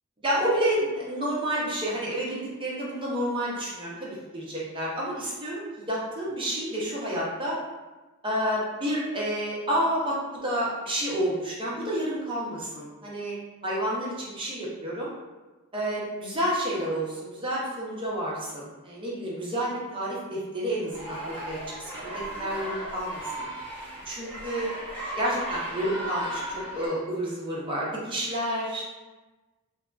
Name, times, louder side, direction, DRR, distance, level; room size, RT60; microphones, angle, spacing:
voice 1, 0.2-7.6 8.2-13.3 13.6-15.1 15.7-23.5 24.1-24.7 25.2-28.9, equal, 25° right, -6 dB, 0.7 m, -30 dB
sound 1, 20.9-26.9, right 1 dB, 10° left, 0.9 m, -36 dB
3.3 x 2.6 x 2.3 m, 1.2 s
head